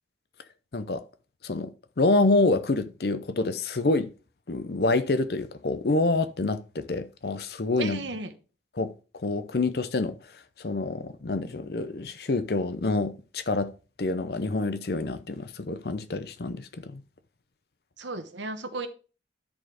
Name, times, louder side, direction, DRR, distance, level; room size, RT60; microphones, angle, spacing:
voice 1, 1.4-4.1 4.5-8.0 8.7-8.9 9.2-10.2 10.6-13.7 14.0-17.0, left 2 dB, 60° left, 0.6 m, -27 dB
voice 2, 7.8-8.3 18.0-18.9, right 3 dB, 85° right, 1.1 m, -34 dB
10.5 x 4.3 x 4.8 m
head